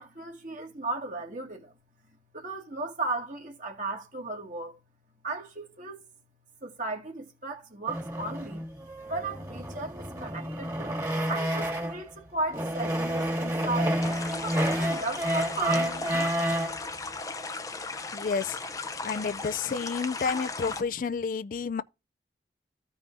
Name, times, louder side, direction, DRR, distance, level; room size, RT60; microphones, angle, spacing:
voice 1, 0.0-1.7 2.3-4.7 5.2-6.0 6.6-8.7 9.1-13.9 14.3-16.5, right 3 dB, 45° right, 2.2 m, -35 dB
sound 1, 7.9-12.1 12.5-16.8, equal, 20° right, 1.8 m, -30 dB
sound 2, 14.0-20.8, left 3 dB, 20° left, 0.7 m, -37 dB
voice 2, 18.1-18.6 19.0-21.8, left 5 dB, 50° left, 0.4 m, -30 dB
15.0 x 5.5 x 2.7 m
head